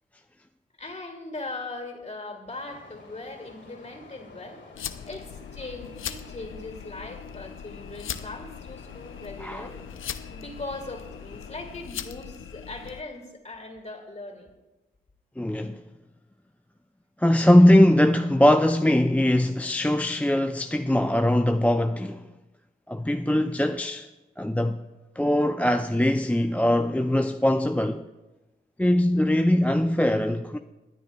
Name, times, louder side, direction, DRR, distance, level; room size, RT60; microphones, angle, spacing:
voice 1, 0.8-4.6 5.0-9.9 10.3-14.5, left 2 dB, 35° left, 2.7 m, -39 dB
sound 1, 2.5-11.8, left 3 dB, 60° left, 2.0 m, -51 dB
sound 2, 4.7-13.0, left 9 dB, 75° left, 0.6 m, -39 dB
voice 2, 15.4-15.8 17.2-22.3 22.9-24.1 24.4-24.8 25.2-28.0 28.8-30.6, left 1 dB, 5° left, 0.5 m, -21 dB
24.0 x 9.5 x 2.4 m
supercardioid pair, 40°, 21 cm